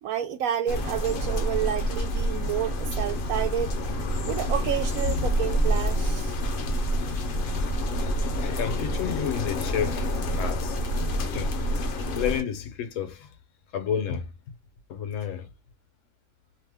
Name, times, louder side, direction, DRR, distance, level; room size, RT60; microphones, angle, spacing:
voice 1, 0.0-3.8 4.3-6.4, right 10 dB, 90° right, 1.0 m, -29 dB
sound 1, 0.7-12.4, equal, 55° left, 0.6 m, -27 dB
voice 2, 8.4-10.8 11.2-13.4 13.7-14.6 14.9-15.5, left 8 dB, 70° left, 1.0 m, -31 dB
2.8 x 2.0 x 3.4 m
omnidirectional pair, 1.4 m